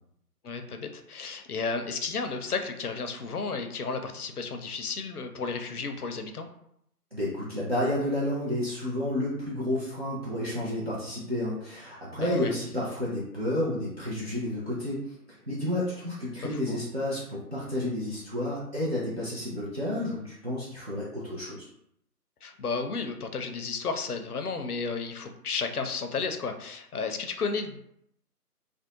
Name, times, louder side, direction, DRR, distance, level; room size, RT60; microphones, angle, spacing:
voice 1, 0.4-6.5 12.2-12.5 16.5-16.8 22.4-27.9, left 4 dB, 70° left, 6 dB, 0.5 m, -33 dB
voice 2, 7.1-21.7, left 1 dB, 40° right, -8 dB, 0.5 m, -31 dB
2.5 x 2.0 x 2.9 m, 0.74 s
figure-of-eight pair, 150°, 48 cm